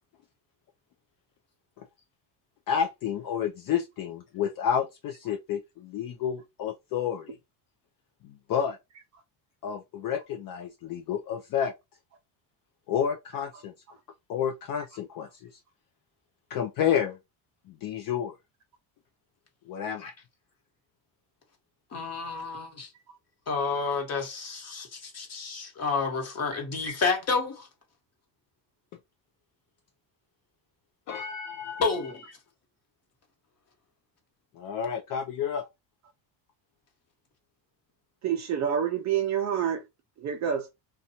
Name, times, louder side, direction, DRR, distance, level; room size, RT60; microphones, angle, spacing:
voice 1, 2.7-7.4 8.2-8.8 9.6-11.7 12.9-13.7 14.3-15.5 16.5-17.2 17.7-18.3 19.7-20.1 31.1-31.8 34.6-35.6, left 8 dB, 50° left, 0.4 m, -30 dB
voice 2, 21.9-22.9 23.5-27.7 31.8-32.3, left 4 dB, 30° left, 1.1 m, -30 dB
voice 3, 38.2-39.9 40.2-40.7, right 8 dB, 40° right, 0.4 m, -28 dB
2.6 x 2.3 x 2.8 m
cardioid pair, 120°, 47 cm